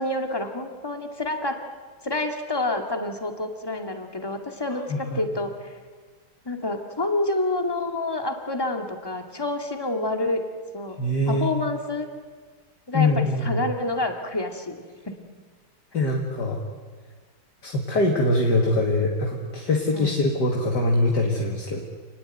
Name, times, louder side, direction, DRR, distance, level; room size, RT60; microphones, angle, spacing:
voice 1, 0.0-1.6 2.0-5.8 6.5-10.4 10.7-11.0 11.3-12.1 12.9-15.2 16.0-16.1 19.9-20.2, left 2 dB, 10° left, 4 dB, 2.2 m, -28 dB
voice 2, 4.9-5.2 11.0-11.5 12.9-13.6 15.9-16.6 17.6-21.8, left 2 dB, 55° left, 0 dB, 2.8 m, -23 dB
28.5 x 20.0 x 9.2 m, 1.5 s
omnidirectional pair, 2.2 m